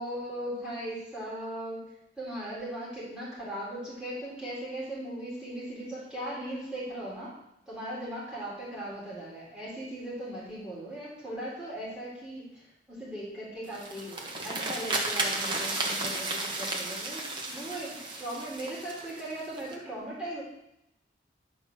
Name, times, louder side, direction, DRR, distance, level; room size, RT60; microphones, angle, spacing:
voice 1, 0.0-1.9 2.2-7.4 7.7-20.4, right 1 dB, 5° right, -9 dB, 4.2 m, -38 dB
sound 1, 13.6-19.7, right 2 dB, 25° right, 1.3 m, -33 dB
11.0 x 5.1 x 6.7 m, 0.81 s
head